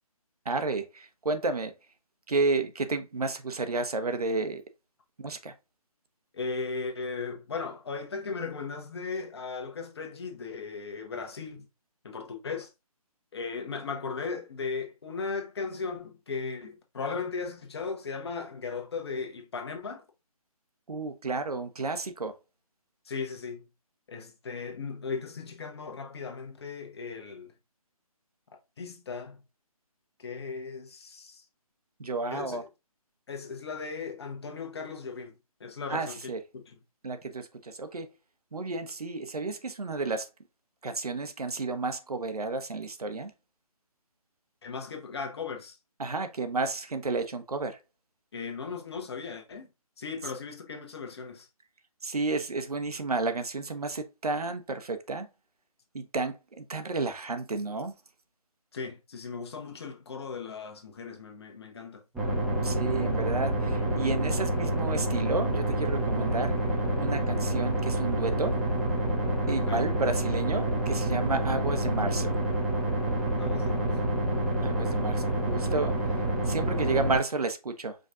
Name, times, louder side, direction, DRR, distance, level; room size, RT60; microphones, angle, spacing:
voice 1, 0.4-1.7 2.3-4.6 5.2-5.5 20.9-22.4 32.0-32.6 35.9-36.4 37.0-38.1 38.5-40.3 40.8-43.3 46.0-47.8 52.0-55.3 55.9-57.9 62.6-66.6 67.0-68.6 69.5-72.3 74.6-78.0, right 3 dB, 80° right, 0.9 m, -31 dB
voice 2, 6.3-11.7 12.0-12.7 13.3-20.0 23.0-23.7 24.1-27.5 28.8-29.4 30.2-31.4 32.3-32.7 33.3-35.3 35.6-36.7 44.6-45.8 48.3-49.7 50.0-51.5 58.7-62.0 69.6-69.9 73.4-74.1, left 4 dB, 45° left, 1.1 m, -37 dB
sound 1, 62.1-77.2, right 1 dB, 5° right, 0.7 m, -28 dB
5.1 x 2.5 x 3.6 m
figure-of-eight pair, 150°, 19 cm